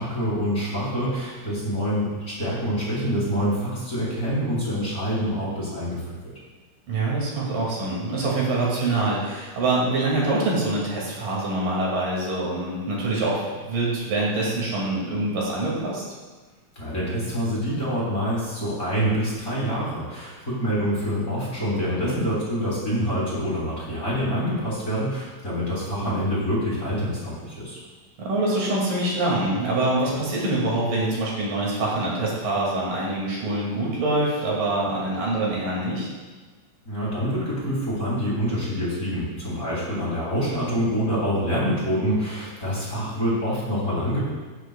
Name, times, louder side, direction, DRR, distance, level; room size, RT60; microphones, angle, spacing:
voice 1, 0.0-6.3 16.7-27.8 36.8-44.3, equal, 25° left, -8 dB, 2.8 m, -26 dB
voice 2, 6.9-16.0 22.0-22.2 26.0-26.2 28.2-36.1, right 2 dB, 70° right, -4 dB, 3.9 m, -25 dB
17.0 x 8.2 x 2.3 m, 1.3 s
omnidirectional pair, 4.0 m